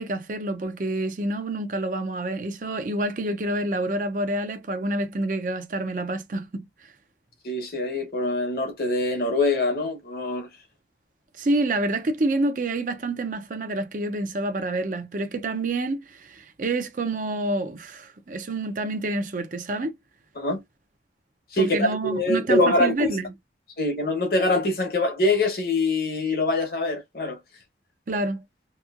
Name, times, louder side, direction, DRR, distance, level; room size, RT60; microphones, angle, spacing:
voice 1, 0.0-6.9 11.4-19.9 21.6-23.3 28.1-28.4, right 2 dB, 45° right, 0.5 m, -28 dB
voice 2, 7.4-10.5 20.4-20.6 21.5-23.2 23.8-27.4, left 2 dB, 55° left, 1.0 m, -24 dB
2.9 x 2.7 x 2.4 m
head